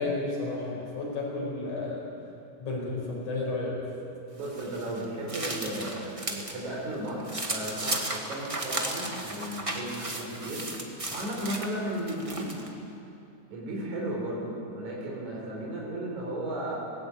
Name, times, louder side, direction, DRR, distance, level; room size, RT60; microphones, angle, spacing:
voice 1, 0.0-2.0 2.6-3.8, left 2 dB, 85° left, -3 dB, 6.5 m, -32 dB
sound 1, 4.4-6.6 6.9-12.7, right 1 dB, 20° right, 0.9 m, -35 dB
voice 2, 4.4-12.7 13.5-16.8, right 1 dB, 80° right, -3 dB, 5.3 m, -35 dB
18.0 x 17.5 x 8.4 m, 2.7 s
omnidirectional pair, 3.4 m